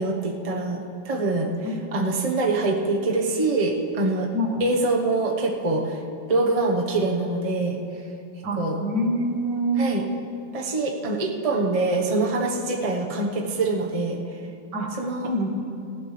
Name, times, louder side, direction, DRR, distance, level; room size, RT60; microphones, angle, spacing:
voice 1, 0.0-4.3 4.6-6.0 6.3-7.8 8.6-8.8 9.8-10.0 10.5-14.2 15.0-15.3, right 2 dB, 25° right, 0 dB, 1.0 m, -24 dB
voice 2, 8.4-9.9 14.7-14.9 15.2-15.6, right 1 dB, 70° right, 2 dB, 2.1 m, -25 dB
19.0 x 15.5 x 3.3 m, 2.6 s
omnidirectional pair, 1.9 m